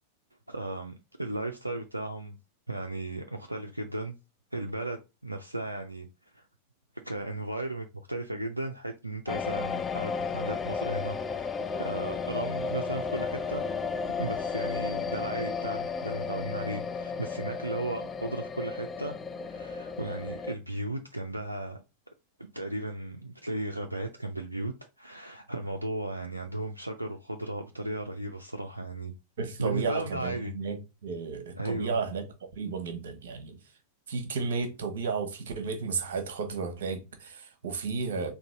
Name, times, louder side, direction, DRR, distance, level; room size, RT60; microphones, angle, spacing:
voice 1, 0.5-2.4 2.7-4.1 4.5-6.1 6.3-6.5 6.9-11.5 11.8-13.7 14.2-19.2 19.4-21.8 22.5-29.1 29.6-30.5 31.6-32.0, right 2 dB, 85° right, 0.4 m, -35 dB
sound 1, 9.3-20.5, left 5 dB, 20° left, 0.4 m, -33 dB
voice 2, 29.4-30.8 31.0-32.2 32.5-33.6 34.1-38.3, right 5 dB, 60° right, 0.9 m, -33 dB
3.9 x 2.7 x 3.8 m
figure-of-eight pair, 90°, 0 cm